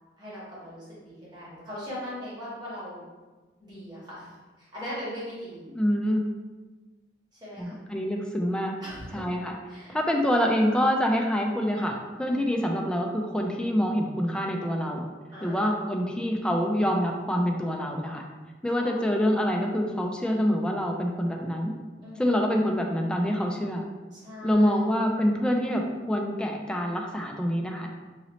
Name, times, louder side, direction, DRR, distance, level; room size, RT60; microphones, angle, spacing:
voice 1, 0.2-3.0 3.6-4.3 4.6-5.7 7.4-7.8 8.8-9.2 9.7-10.0 12.2-12.4 15.3-15.8 18.8-19.2 22.0-22.4 24.1-24.7, equal, 25° right, -9 dB, 1.4 m, -40 dB
voice 2, 5.7-6.2 7.6-8.7 9.1-9.5 9.9-15.0 15.4-18.2 18.6-21.8 22.2-23.8 24.4-27.9, equal, 5° left, 1 dB, 0.3 m, -26 dB
3.9 x 2.8 x 3.0 m, 1.3 s
head